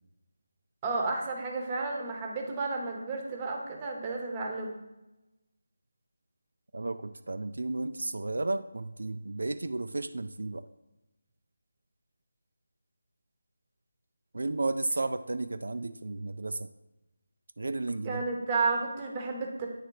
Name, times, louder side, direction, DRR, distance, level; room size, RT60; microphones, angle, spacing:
voice 1, 0.8-4.7 18.0-19.7, right 3 dB, 20° right, 1 dB, 0.8 m, -32 dB
voice 2, 6.7-10.6 14.3-16.7 17.6-18.2, right 2 dB, 80° right, 10 dB, 0.3 m, -33 dB
8.9 x 3.3 x 4.7 m, 0.99 s
figure-of-eight pair, 170°, 0 cm